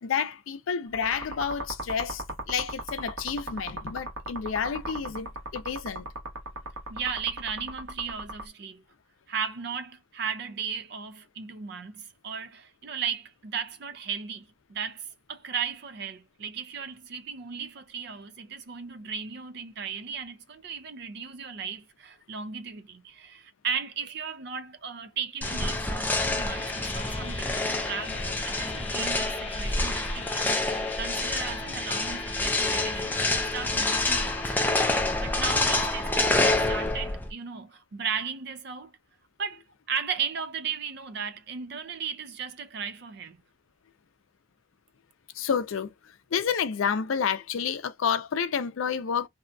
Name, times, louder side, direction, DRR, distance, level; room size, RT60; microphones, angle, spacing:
voice 1, 0.0-6.1 45.3-49.3, left 7 dB, 85° left, 0.4 m, -30 dB
sound 1, 0.9-8.4, right 2 dB, 80° right, 1.1 m, -37 dB
voice 2, 6.9-8.8 9.3-34.5 35.2-38.9 39.4-43.4, right 6 dB, 55° right, 0.4 m, -36 dB
sound 2, 25.4-37.3, left 2 dB, 10° left, 0.4 m, -27 dB
sound 3, 26.5-36.9, left 4 dB, 30° left, 1.1 m, -41 dB
2.7 x 2.2 x 2.5 m
head